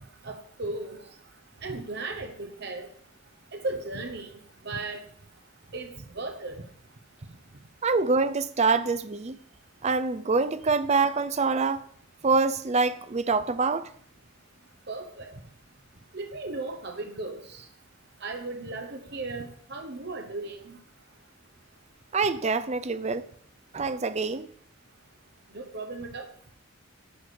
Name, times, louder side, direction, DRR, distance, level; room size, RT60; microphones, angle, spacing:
voice 1, 0.2-1.0 1.6-2.9 3.5-5.0 5.7-6.6 14.9-15.3 16.1-17.7 18.2-20.8 25.5-26.3, right 2 dB, 50° right, 0.9 m, -36 dB
voice 2, 7.8-9.4 9.8-11.8 12.2-13.9 22.1-23.2 23.7-24.5, right 4 dB, 30° right, 0.4 m, -25 dB
10.5 x 4.9 x 6.7 m
head